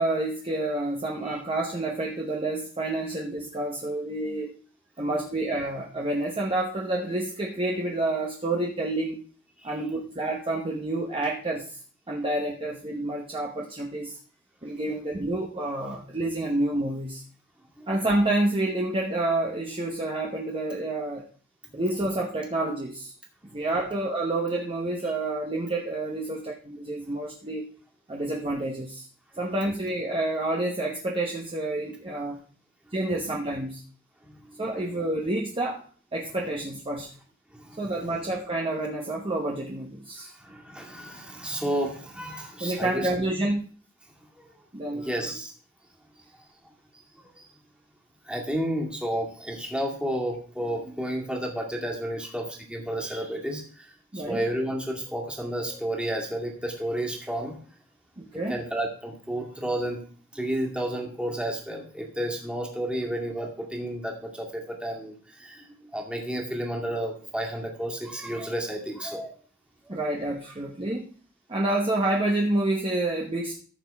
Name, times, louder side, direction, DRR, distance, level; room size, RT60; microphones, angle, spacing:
voice 1, 0.0-4.5 5.0-9.2 9.6-11.8 12.1-14.2 14.6-17.2 17.9-21.2 21.7-23.1 23.5-27.7 28.1-29.1 29.4-32.4 32.9-33.8 34.6-35.8 36.1-37.1 37.8-40.3 42.6-43.7 44.7-45.4 54.1-54.4 58.2-58.6 69.9-71.0 71.5-73.6, right 2 dB, 25° right, -2 dB, 1.1 m, -28 dB
voice 2, 40.5-43.1 44.9-45.5 48.3-53.6 54.3-57.5 58.5-60.0 60.3-65.1 65.4-65.6 65.9-69.3 69.9-70.0, right 1 dB, 5° right, -1 dB, 2.1 m, -31 dB
14.5 x 6.8 x 3.5 m, 0.43 s
head